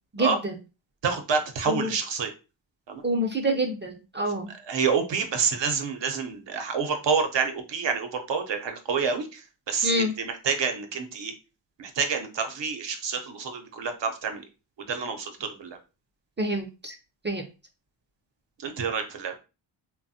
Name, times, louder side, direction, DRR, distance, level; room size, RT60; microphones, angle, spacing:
voice 1, 0.1-0.6 1.7-1.9 3.0-4.5 9.8-10.1 16.4-17.0 17.2-17.4, right 1 dB, 25° right, 4 dB, 0.6 m, -27 dB
voice 2, 1.0-2.3 2.9-3.0 4.7-11.3 11.8-14.4 14.8-15.8 18.6-19.3, right 5 dB, 65° right, 6 dB, 0.8 m, -28 dB
3.2 x 2.2 x 2.7 m, 0.30 s
cardioid pair, 55°, 47 cm